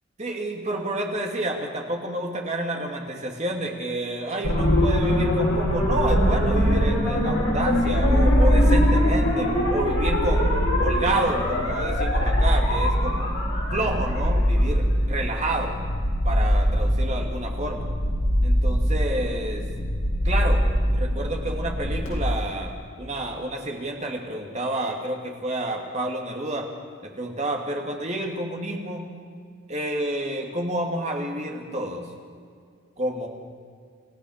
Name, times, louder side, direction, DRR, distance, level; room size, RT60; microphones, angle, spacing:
voice 1, 0.2-13.3 13.7-15.8 16.2-17.9 18.4-19.6 20.2-20.6 20.9-26.7 27.2-29.1 29.7-32.1 33.0-33.3, right 1 dB, 30° right, 1 dB, 2.7 m, -29 dB
sound 1, 4.4-22.1, equal, 70° left, 7.8 m, -22 dB
29.5 x 15.0 x 6.7 m, 2.1 s
head